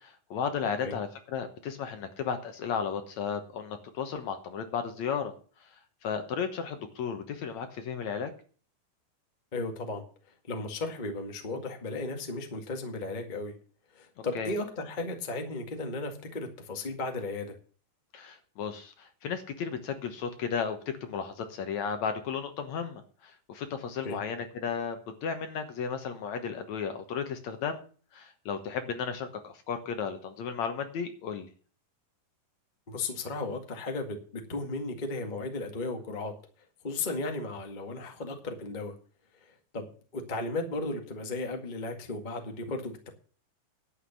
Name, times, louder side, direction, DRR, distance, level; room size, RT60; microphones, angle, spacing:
voice 1, 0.0-5.3 5.6-5.7 6.0-8.3 14.3-14.5 18.1-27.8 28.1-31.5, left 6 dB, 65° left, 7 dB, 2.3 m, -34 dB
voice 2, 9.5-10.0 10.5-13.5 13.9-17.5 24.0-24.2 32.9-36.3 36.8-38.9 39.7-43.1, left 2 dB, 20° left, 4 dB, 1.2 m, -35 dB
11.5 x 8.1 x 7.1 m, 0.41 s
omnidirectional pair, 3.9 m